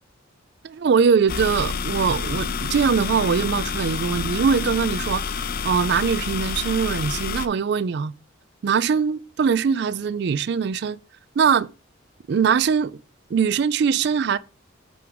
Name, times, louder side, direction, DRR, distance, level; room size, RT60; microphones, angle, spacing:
voice 1, 0.6-5.4 5.6-8.1 8.6-11.0 11.4-11.7 12.3-13.0 13.3-14.4, right 6 dB, 55° right, 0.3 m, -22 dB
sound 1, 1.3-7.5, left 5 dB, 45° left, 0.5 m, -28 dB
7.7 x 3.5 x 5.2 m
head